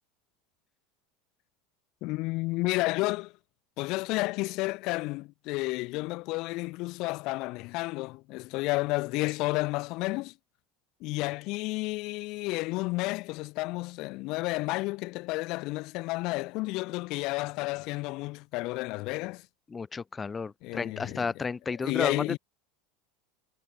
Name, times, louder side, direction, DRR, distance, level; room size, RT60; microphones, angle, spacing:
voice 1, 2.0-3.3 3.8-10.3 11.0-19.5 20.6-21.3 21.8-22.4, left 22 dB, 50° left, 3.9 m, -31 dB
voice 2, 19.7-22.4, left 5 dB, 15° left, 1.5 m, -32 dB
supercardioid pair, 155°, 0 cm